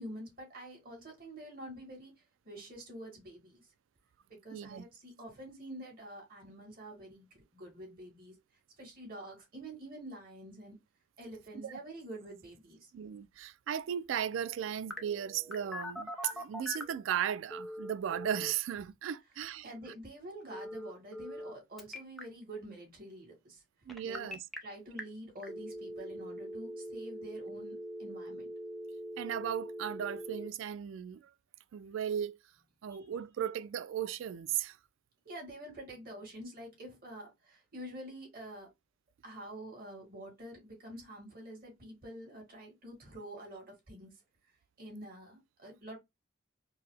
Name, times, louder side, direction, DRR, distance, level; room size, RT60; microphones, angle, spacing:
voice 1, 0.0-3.7 4.3-8.4 8.8-10.8 11.2-12.9 19.6-23.6 24.0-24.3 24.6-28.5 35.2-38.7 39.2-44.2 44.8-46.0, right 1 dB, 50° right, 2.2 m, -47 dB
voice 2, 4.5-4.8 11.6-11.7 12.9-19.7 23.9-24.4 29.2-31.3 31.7-32.4 32.8-34.8, right 9 dB, 85° right, 0.3 m, -36 dB
Telephone, 14.9-17.0 17.5-18.5 20.5-21.5 21.8-22.2 23.9-24.6 25.0-25.1 25.4-30.5, equal, ahead, 0.5 m, -42 dB
4.6 x 2.1 x 3.2 m
head